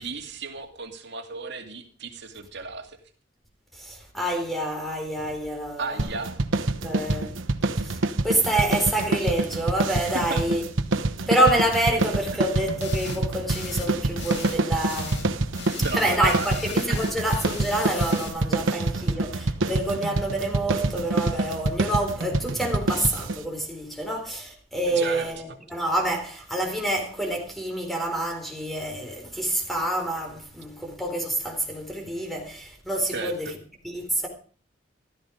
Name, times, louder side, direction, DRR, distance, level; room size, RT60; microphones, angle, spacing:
voice 1, 0.0-3.0 5.8-6.3 6.9-7.3 10.1-10.4 12.3-12.4 15.8-16.5 16.9-17.0 18.7-18.9 24.9-25.6 33.1-33.5, right 4 dB, 60° right, 2.4 m, -34 dB
voice 2, 3.7-6.1 6.8-7.3 7.8-8.0 8.2-10.6 11.3-15.2 15.9-33.5 33.8-34.3, right 1 dB, ahead, 4.0 m, -27 dB
sound 1, 6.0-23.4, right 2 dB, 75° right, 1.1 m, -27 dB
sound 2, 12.8-13.2 13.5-13.9 14.2-14.6 14.9-15.3 15.5-18.3, left 6 dB, 65° left, 1.8 m, -39 dB
15.0 x 13.5 x 5.1 m
head